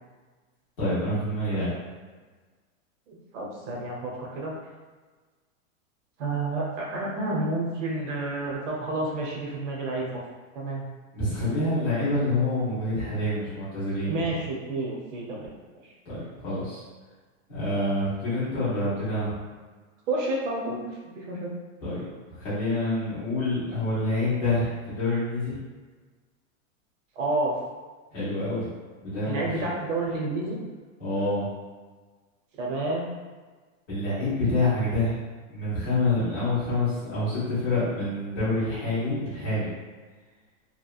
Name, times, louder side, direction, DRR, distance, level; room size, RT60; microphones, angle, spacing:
voice 1, 0.8-1.7 11.1-14.2 16.1-16.8 17.5-19.3 21.8-25.6 28.1-28.6 29.0-29.5 31.0-31.5 33.9-35.1 35.5-39.7, left 2 dB, 15° left, -12 dB, 0.5 m, -27 dB
voice 2, 3.1-4.5 6.2-10.2 10.5-10.8 14.0-15.5 15.8-15.9 20.1-21.5 27.2-27.5 29.2-30.6 32.6-33.1, right 2 dB, 60° right, -2 dB, 0.8 m, -30 dB
2.8 x 2.1 x 2.3 m, 1.4 s
supercardioid pair, 175°, 41 cm